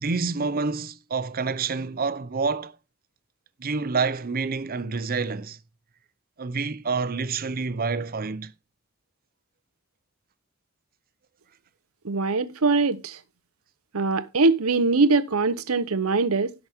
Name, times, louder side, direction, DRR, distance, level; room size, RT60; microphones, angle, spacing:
voice 1, 0.0-2.8 3.6-5.6 6.4-8.5, right 4 dB, 45° right, 0.7 m, -28 dB
voice 2, 12.0-13.2 13.9-16.5, right 3 dB, 90° right, 0.9 m, -22 dB
16.5 x 6.1 x 3.5 m
head